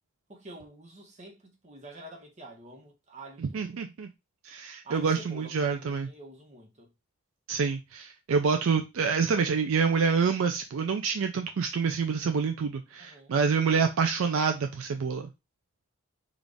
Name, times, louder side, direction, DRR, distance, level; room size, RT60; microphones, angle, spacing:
voice 1, 0.3-3.8 4.8-6.9 13.0-13.3, right 2 dB, 30° right, 0.9 m, -47 dB
voice 2, 3.5-4.1 4.4-6.1 7.5-15.3, right 5 dB, 65° right, 0.4 m, -27 dB
3.9 x 2.4 x 3.4 m
head